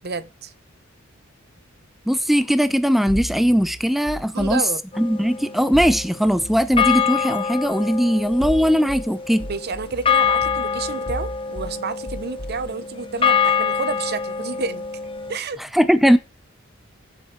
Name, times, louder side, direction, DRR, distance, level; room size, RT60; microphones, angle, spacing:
voice 1, 0.0-0.5 4.3-4.8 9.5-14.8 15.3-15.6, right 4 dB, 50° right, 0.8 m, -30 dB
voice 2, 2.1-4.6 5.0-9.5 15.7-16.2, equal, ahead, 0.6 m, -19 dB
sound 1, 3.1-4.6 5.7-7.0 8.2-9.1 9.4-11.7 12.1-12.7, equal, 80° left, 3.4 m, -34 dB
sound 2, 4.9-6.3 6.8-15.4, left 7 dB, 25° left, 1.0 m, -25 dB
15.5 x 7.1 x 4.4 m
head